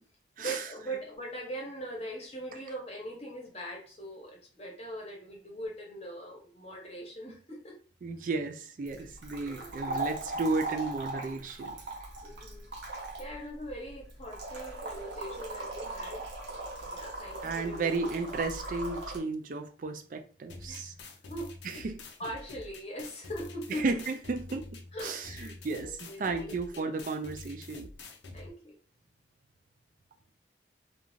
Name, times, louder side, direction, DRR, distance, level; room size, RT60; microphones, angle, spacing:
voice 1, 0.4-7.8 9.4-10.0 12.2-12.7 13.2-16.2 16.9-18.0 20.7-20.9 21.3-21.9 22.2-23.8 24.9-26.8 28.3-28.7, right 1 dB, 35° left, -1 dB, 0.8 m, -41 dB
voice 2, 8.0-11.8 17.4-20.9 21.6-22.0 23.7-27.9, right 3 dB, 45° right, 7 dB, 0.3 m, -34 dB
sound 1, 8.9-19.2, right 2 dB, 70° right, 0.7 m, -39 dB
sound 2, 20.5-28.5, left 3 dB, 75° left, 0.5 m, -47 dB
2.5 x 2.3 x 3.1 m, 0.41 s
head